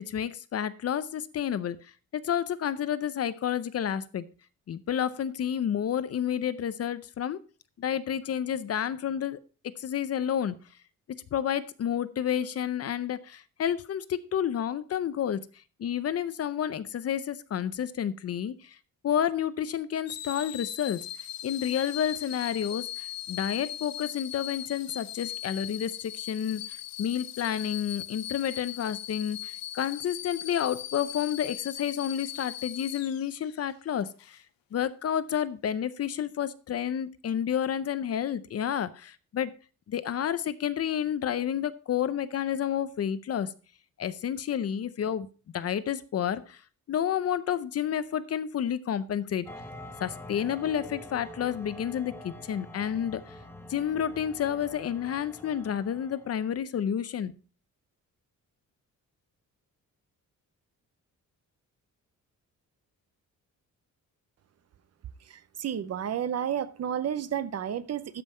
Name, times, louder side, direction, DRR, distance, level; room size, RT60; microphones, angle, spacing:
voice 1, 0.1-1.8 2.1-4.2 4.7-7.4 7.8-9.4 9.8-10.6 11.3-15.4 15.8-18.8 19.0-21.0 21.4-34.4 34.7-39.5 39.9-43.5 44.0-45.3 45.5-46.6 46.9-49.5 50.0-53.2 53.7-57.3, left 9 dB, 45° left, 0.6 m, -30 dB
sound 1, 20.1-33.7 34.2-34.4, left 13 dB, 85° left, 0.7 m, -39 dB
sound 2, 49.5-56.5, left 1 dB, 5° left, 1.1 m, -46 dB
voice 2, 65.3-68.2, right 9 dB, 45° right, 0.7 m, -31 dB
13.0 x 5.5 x 4.4 m
wide cardioid pair, 170°, 34 cm